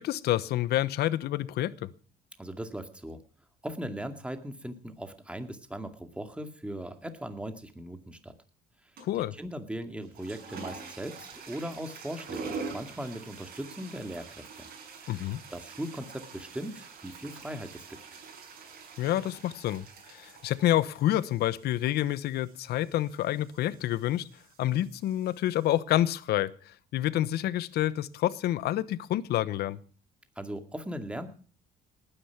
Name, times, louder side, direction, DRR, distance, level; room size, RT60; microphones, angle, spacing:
voice 1, 0.0-1.9 9.0-9.4 15.1-15.4 19.0-24.3 24.6-29.8, left 13 dB, 70° left, 0.9 m, -28 dB
voice 2, 2.4-3.2 3.6-8.3 9.3-14.7 15.0-15.2 15.5-18.0 30.4-31.3, right 1 dB, 5° right, 2.2 m, -39 dB
sound 1, 9.0-9.3 10.0-25.8, right 4 dB, 60° right, 6.9 m, -46 dB
19.0 x 10.0 x 5.9 m
cardioid pair, 110°, 17 cm